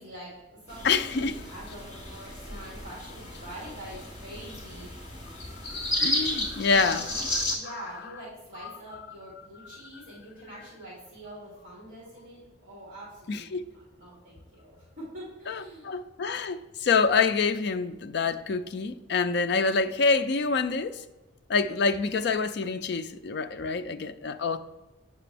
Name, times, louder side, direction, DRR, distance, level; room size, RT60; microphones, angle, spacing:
voice 1, 0.0-4.9 6.5-15.9, right 1 dB, 40° right, 2.8 m, -45 dB
sound 1, 0.7-7.5, left 1 dB, 35° left, 2.1 m, -33 dB
voice 2, 0.8-1.4 5.7-7.1 7.3-7.4 13.3-13.6 15.5-21.0 21.5-24.6, left 4 dB, 55° left, 0.4 m, -26 dB
8.5 x 5.9 x 3.4 m
head